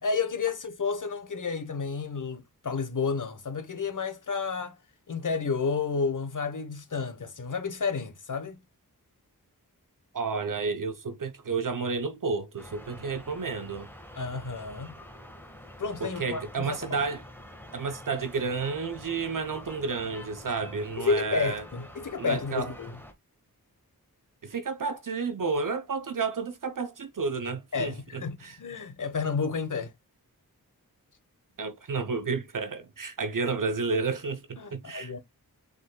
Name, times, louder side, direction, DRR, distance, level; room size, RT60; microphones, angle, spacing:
voice 1, 0.0-4.7 5.1-8.6 14.1-15.0 15.8-16.7 21.0-22.9 27.7-29.9 34.6-35.2, left 5 dB, 55° left, 1.1 m, -31 dB
voice 2, 10.1-13.9 16.0-17.2 17.7-21.6 22.2-22.7 24.4-28.6 31.6-35.1, right 4 dB, 60° right, 0.7 m, -31 dB
sound 1, 12.6-23.1, left 1 dB, 5° left, 1.4 m, -47 dB
5.1 x 4.0 x 2.2 m
wide cardioid pair, 55°, 37 cm